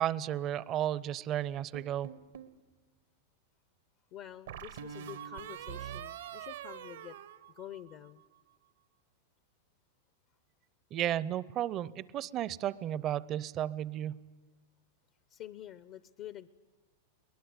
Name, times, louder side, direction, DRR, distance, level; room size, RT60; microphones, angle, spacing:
voice 1, 0.0-2.1 10.9-14.2, right 11 dB, 35° right, 21 dB, 0.7 m, -33 dB
sound 1, 1.7-2.6 4.5-8.1, right 10 dB, 80° right, 1.4 m, -44 dB
voice 2, 4.1-7.2 7.5-8.2 15.3-16.5, left 11 dB, 45° left, 15 dB, 0.7 m, -47 dB
22.5 x 20.0 x 9.7 m, 1.3 s
hypercardioid pair, 120°, 0 cm